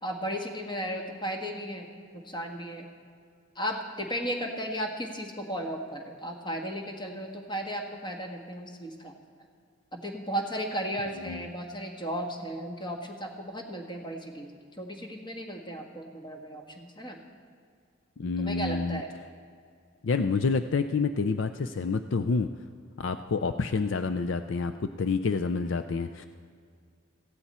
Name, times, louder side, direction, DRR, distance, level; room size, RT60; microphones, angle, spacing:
voice 1, 0.0-2.9 3.5-9.1 9.9-17.2 18.4-19.1, equal, 20° left, 1 dB, 1.5 m, -35 dB
voice 2, 18.2-19.0 20.0-22.5 23.0-26.2, left 4 dB, 60° left, 8 dB, 0.4 m, -28 dB
18.0 x 15.5 x 4.3 m, 2.2 s
head